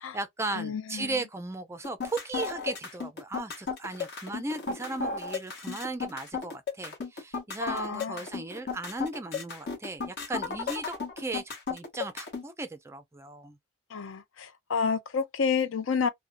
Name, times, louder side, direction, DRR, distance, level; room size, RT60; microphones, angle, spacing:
voice 1, 0.0-13.6, right 2 dB, 15° right, 0.3 m, -37 dB
voice 2, 0.5-1.1 7.6-8.2 13.9-16.1, left 5 dB, 75° left, 0.5 m, -30 dB
sound 1, 1.8-12.4, left 5 dB, 50° left, 0.8 m, -34 dB
2.5 x 2.1 x 2.4 m
head